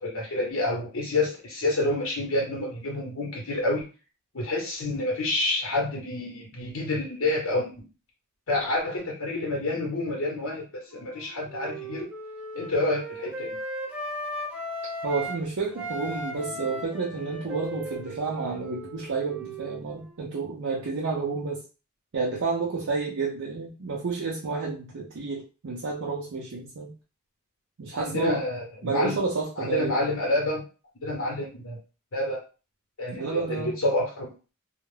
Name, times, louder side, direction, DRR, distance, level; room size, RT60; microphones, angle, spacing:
voice 1, 0.0-3.8 4.3-7.9 8.5-12.1 12.5-13.6 27.9-29.2 29.6-30.6 31.0-31.8 32.1-32.4 33.0-34.3, left 2 dB, 75° left, -2 dB, 0.8 m, -28 dB
Wind instrument woodwind instrument, 10.9-15.4 15.7-20.2, right 1 dB, 5° right, 0.4 m, -37 dB
voice 2, 15.0-21.6 22.1-26.9 27.8-28.4 28.8-29.9 33.1-33.7, right 4 dB, 80° right, -3 dB, 0.5 m, -30 dB
2.3 x 2.0 x 3.2 m, 0.34 s
head